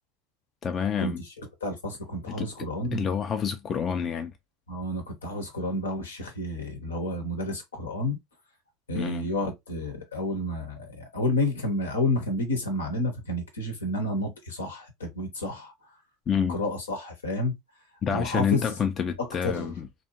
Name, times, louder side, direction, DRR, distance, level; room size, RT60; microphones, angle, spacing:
voice 1, 0.6-1.2 2.3-2.5 2.9-4.3 9.0-9.3 16.3-16.6 18.0-19.9, left 7 dB, 35° left, 0.4 m, -28 dB
voice 2, 1.6-3.0 4.7-8.2 8.9-15.7 16.5-17.6 18.1-18.7 19.4-19.7, left 1 dB, 80° left, 0.9 m, -30 dB
2.7 x 2.3 x 2.8 m
figure-of-eight pair, 75°, 0 cm